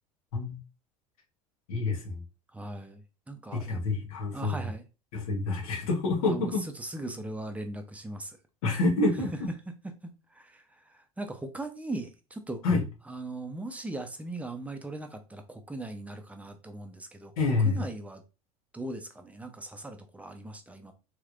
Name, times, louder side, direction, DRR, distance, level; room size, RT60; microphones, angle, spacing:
voice 1, 1.7-2.2 3.5-4.7 5.1-6.6 8.6-9.5 12.6-12.8 17.4-17.9, left 3 dB, 70° left, 1.2 m, -27 dB
voice 2, 2.5-3.0 3.3-3.8 4.3-4.8 6.2-6.5 6.8-8.4 10.3-12.6 13.1-17.3 17.6-18.2 18.7-20.9, right 2 dB, 5° right, 0.7 m, -39 dB
3.2 x 3.2 x 2.5 m
hypercardioid pair, 80°, 19 cm